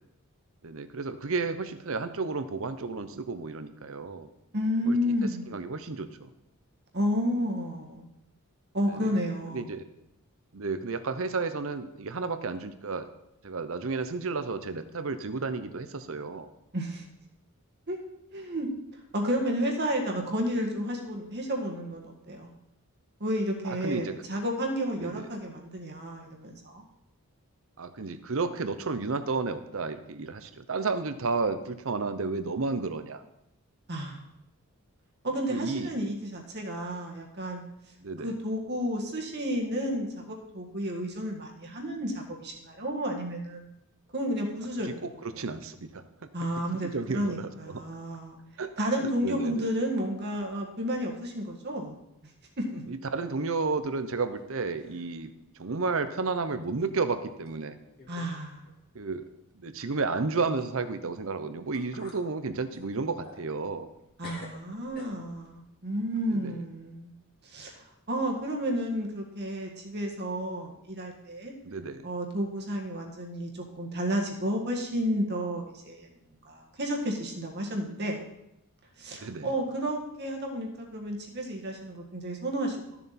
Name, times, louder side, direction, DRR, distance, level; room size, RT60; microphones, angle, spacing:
voice 1, 0.6-4.3 4.8-6.3 8.9-9.2 9.5-9.8 10.5-13.1 13.4-16.5 23.6-24.2 25.0-25.3 27.8-33.2 35.5-35.9 38.0-38.3 44.8-46.0 46.8-47.5 48.6-48.7 49.0-49.7 52.9-55.3 55.6-57.8 58.9-59.3 59.5-63.9 66.3-66.6 71.6-72.1 79.1-79.5, right 4 dB, 65° right, 10 dB, 0.8 m, -32 dB
voice 2, 4.5-5.5 6.9-8.0 8.7-9.6 16.7-17.0 17.9-18.0 18.3-18.7 19.1-22.5 23.2-26.8 33.9-34.2 35.2-37.6 38.2-43.7 44.1-45.4 46.3-48.4 48.8-51.9 52.6-52.8 58.1-58.6 64.2-67.1 67.4-71.5 72.0-76.1 76.4-78.2 79.0-82.8, equal, 50° right, 1 dB, 1.7 m, -31 dB
sound 1, 53.7-54.5 54.7-55.2 55.7-55.8 56.6-56.7 57.5-57.6 58.0-58.4 58.6-58.8 61.3-61.4 61.7-62.2 62.7-64.0 64.2-65.5, left 2 dB, 45° left, 2.3 m, -49 dB
13.0 x 7.0 x 4.2 m, 0.85 s
head